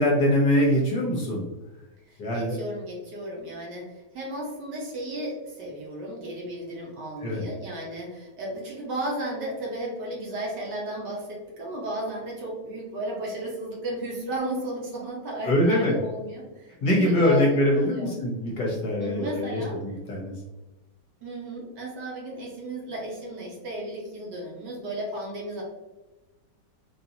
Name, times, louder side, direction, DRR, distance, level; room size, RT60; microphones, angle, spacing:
voice 1, 0.0-1.4 2.2-2.6 7.2-7.4 15.4-16.0 16.8-20.3, left 1 dB, 65° left, -3 dB, 1.2 m, -23 dB
voice 2, 2.1-18.1 19.0-19.8 21.2-25.6, right 1 dB, 60° right, -3 dB, 1.4 m, -34 dB
4.1 x 2.6 x 2.7 m, 1.1 s
omnidirectional pair, 2.3 m